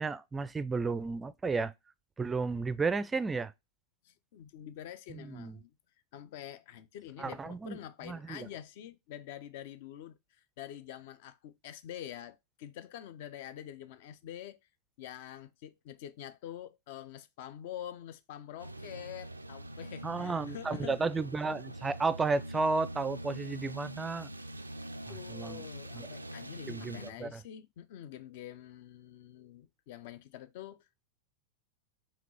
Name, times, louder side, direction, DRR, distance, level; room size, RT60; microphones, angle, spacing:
voice 1, 0.0-1.7 2.2-3.5 5.1-5.6 7.2-7.8 8.0-8.5 20.0-24.3 25.3-25.6 25.9-26.1 26.7-27.4, right 4 dB, 15° right, 0.4 m, -33 dB
voice 2, 4.0-5.7 6.1-14.6 15.0-21.1 25.1-31.0, left 11 dB, 50° left, 0.6 m, -46 dB
sound 1, 18.6-27.1, right 1 dB, 85° right, 0.3 m, -44 dB
5.0 x 3.0 x 3.1 m
figure-of-eight pair, 90°, 0 cm